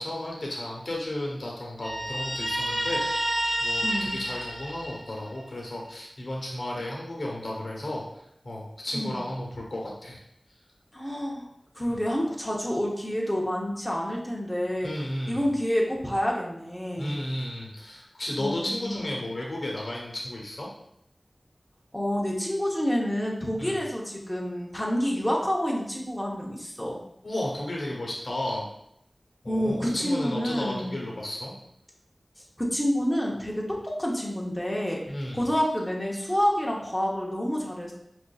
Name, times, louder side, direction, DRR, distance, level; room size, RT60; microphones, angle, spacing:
voice 1, 0.0-8.0 8.4-10.2 14.8-15.5 17.0-20.7 23.6-23.8 27.2-28.7 29.4-31.5 35.1-35.4, left 1 dB, 75° left, -2 dB, 0.9 m, -33 dB
Guitar, 1.8-5.4, right 1 dB, 65° right, 1.3 m, -29 dB
voice 2, 3.8-4.1 8.9-9.2 10.9-11.5 11.8-14.9 15.3-17.2 18.4-19.1 21.9-27.0 29.5-31.0 32.6-35.0 35.3-37.9, equal, 10° left, -3 dB, 0.7 m, -28 dB
5.1 x 2.5 x 2.3 m, 0.77 s
wide cardioid pair, 60°, 0 cm